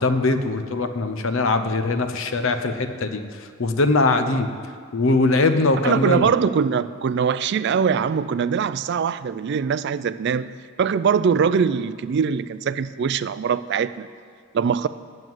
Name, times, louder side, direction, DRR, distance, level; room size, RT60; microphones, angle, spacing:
voice 1, 0.0-3.2 3.6-4.5 4.9-6.3, left 3 dB, 60° left, 8 dB, 0.7 m, -21 dB
voice 2, 5.8-10.5 10.8-14.1 14.5-14.9, right 6 dB, 50° right, 15 dB, 0.3 m, -22 dB
9.3 x 7.6 x 7.7 m, 2.1 s
head